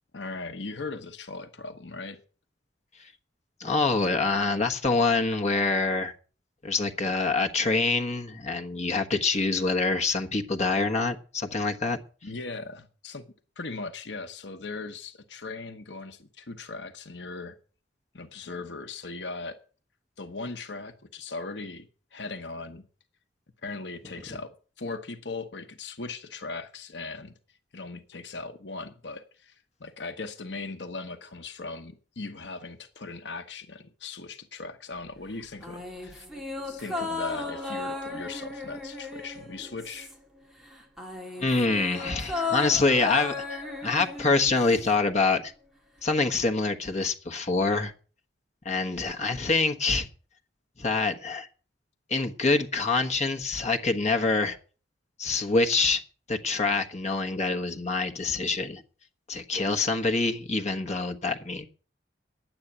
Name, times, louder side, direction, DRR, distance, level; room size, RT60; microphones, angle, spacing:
voice 1, 0.1-2.2 12.2-17.6 18.1-19.6 20.2-22.8 23.6-27.4 27.7-36.3 36.6-40.1, left 3 dB, 65° left, 1.0 m, -39 dB
voice 2, 3.6-6.2 6.6-12.0 41.4-45.5 46.0-47.9 48.6-50.1 50.8-51.5 52.1-54.6 55.2-56.0 56.3-58.8 59.3-61.7, left 3 dB, 40° left, 1.3 m, -26 dB
sound 1, 35.6-40.4 40.6-45.0 45.3-45.4, left 3 dB, ahead, 2.0 m, -35 dB
10.5 x 8.1 x 8.6 m
head